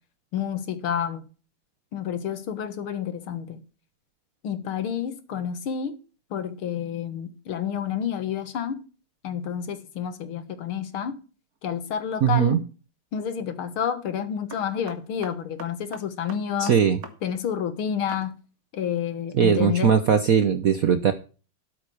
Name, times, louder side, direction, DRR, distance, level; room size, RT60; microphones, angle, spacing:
voice 1, 0.3-1.2 1.9-3.6 4.4-6.0 6.3-8.8 9.2-11.2 11.6-12.6 13.1-16.8 17.2-18.4 18.7-20.0, left 8 dB, 75° left, 2.3 m, -29 dB
sound 1, 12.1-12.4 14.5-17.2 17.4-17.5 18.1-18.3, right 4 dB, 40° right, 2.0 m, -42 dB
voice 2, 12.2-12.6 16.6-17.0 19.3-21.1, right 7 dB, 60° right, 0.9 m, -20 dB
13.0 x 5.9 x 6.4 m
omnidirectional pair, 2.4 m